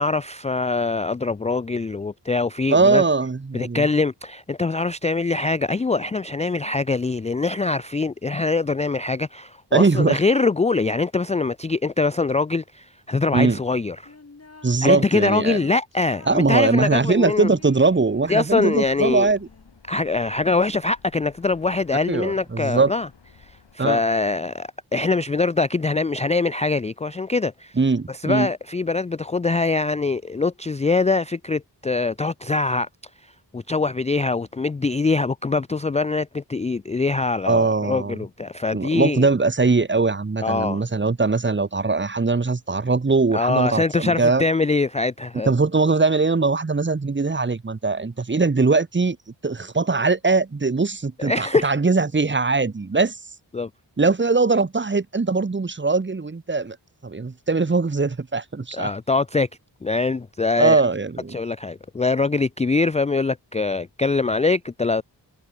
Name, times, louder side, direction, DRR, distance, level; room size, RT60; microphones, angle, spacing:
voice 1, 0.0-3.0 3.5-14.1 14.8-17.5 18.3-19.3 19.9-23.1 23.4-27.8 28.1-32.9 33.2-39.3 40.4-40.8 43.3-45.5 51.2-51.7 53.5-53.7 58.7-59.5 59.8-60.8 61.3-65.0, left 3 dB, 15° left, 0.4 m, -23 dB
voice 2, 2.7-3.9 9.7-10.2 13.3-13.6 14.6-15.6 16.3-19.4 22.1-22.9 23.8-24.0 27.8-28.5 37.5-38.2 38.7-44.4 45.4-49.2 49.4-53.2 54.0-56.8 57.0-58.9 60.6-61.4, right 3 dB, 25° right, 1.1 m, -21 dB
sound 1, 14.1-14.9 15.2-19.8, left 3 dB, 35° left, 3.5 m, -48 dB
sound 2, 16.3-23.8, left 6 dB, 75° left, 6.6 m, -53 dB
wide cardioid pair, 85°, 43 cm